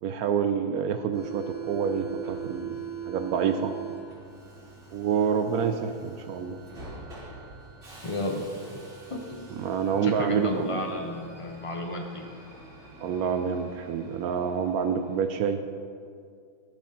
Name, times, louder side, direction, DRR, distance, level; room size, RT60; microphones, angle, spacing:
voice 1, 0.0-3.7 4.9-6.6 9.5-10.8 13.0-15.6, right 7 dB, 75° right, 8 dB, 0.8 m, -27 dB
Subway metro underground, 1.1-15.4, right 6 dB, 40° right, 3.4 m, -42 dB
voice 2, 8.0-8.4 9.1-9.5 10.0-12.2, left 2 dB, 45° left, 3 dB, 0.4 m, -32 dB
15.5 x 7.6 x 4.4 m, 2.3 s
omnidirectional pair, 2.1 m